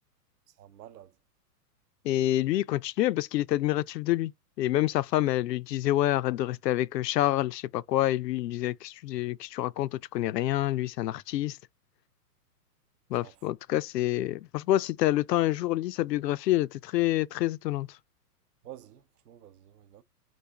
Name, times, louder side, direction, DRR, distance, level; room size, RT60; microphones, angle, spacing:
voice 1, 0.6-1.1 13.2-13.3 18.6-20.0, right 12 dB, 70° right, 0.8 m, -49 dB
voice 2, 2.0-4.3 4.6-11.6 13.1-17.9, left 15 dB, 80° left, 0.5 m, -27 dB
4.0 x 2.5 x 3.4 m
hypercardioid pair, 135°, 49 cm